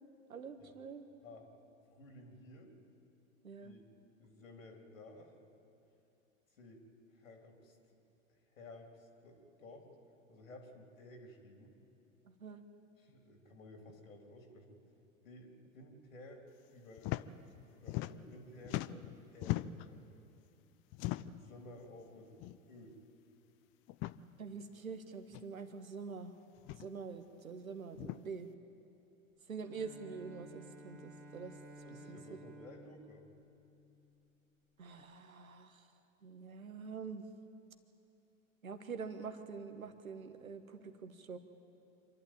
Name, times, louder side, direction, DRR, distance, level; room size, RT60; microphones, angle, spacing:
voice 1, 0.3-1.1 3.4-3.7 12.2-12.6 24.4-26.3 26.8-28.5 29.5-31.5 32.1-32.2 34.8-35.9 36.2-37.2 38.6-41.4, right 5 dB, 80° right, 8 dB, 1.6 m, -46 dB
voice 2, 1.9-2.7 3.6-3.8 4.2-5.3 6.6-6.8 7.1-7.8 8.5-9.9 10.3-11.7 13.0-14.8 15.2-16.4 16.7-17.2 17.7-20.0 21.3-22.4 22.7-23.0 31.8-33.2, left 1 dB, 75° left, 3 dB, 3.4 m, -54 dB
sound 1, 17.0-17.2 17.5-18.4 18.6-19.9 20.9-21.5 22.4-22.6 22.9-23.0 23.9-24.2 25.3-25.4 26.6-26.9 27.9-28.2, left 16 dB, 30° left, 0.5 m, -39 dB
Bowed string instrument, 29.6-34.2, right 1 dB, 35° right, 2.6 m, -55 dB
26.5 x 12.0 x 9.0 m, 2.8 s
figure-of-eight pair, 90°, 41 cm